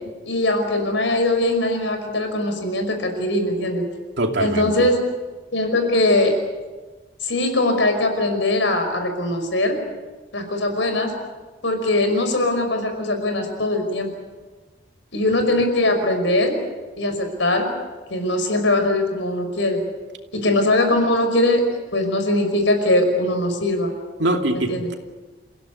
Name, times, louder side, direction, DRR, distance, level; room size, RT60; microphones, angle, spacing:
voice 1, 0.2-3.9 4.4-5.0 5.5-6.3 7.2-9.8 10.3-11.1 11.6-14.1 15.1-16.6 17.0-17.7 18.1-19.8 20.3-23.9 24.5-24.9, left 1 dB, 90° left, 5 dB, 5.5 m, -21 dB
voice 2, 4.2-4.9 24.2-24.9, right 1 dB, 75° right, 4 dB, 2.7 m, -23 dB
28.0 x 16.5 x 9.6 m, 1.3 s
head